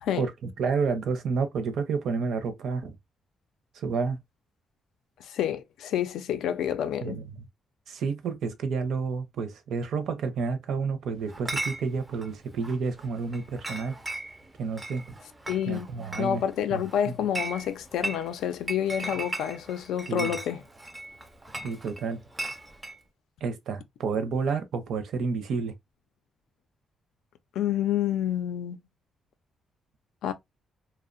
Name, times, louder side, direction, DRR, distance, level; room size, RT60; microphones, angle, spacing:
voice 1, 0.2-2.9 3.7-4.2 7.0-7.4 7.9-14.0 14.6-15.0 15.7-16.4 16.7-17.1 20.1-20.4 21.6-22.2 23.4-25.7, right 5 dB, 65° right, 0.5 m, -30 dB
voice 2, 5.2-7.2 15.5-15.9 16.2-20.6 27.6-28.8 30.2-30.3, left 10 dB, 90° left, 0.4 m, -28 dB
Chatter / Chink clink, 11.3-23.0, right 2 dB, 15° right, 0.3 m, -38 dB
2.7 x 2.1 x 2.4 m
cardioid pair, 145°, 0 cm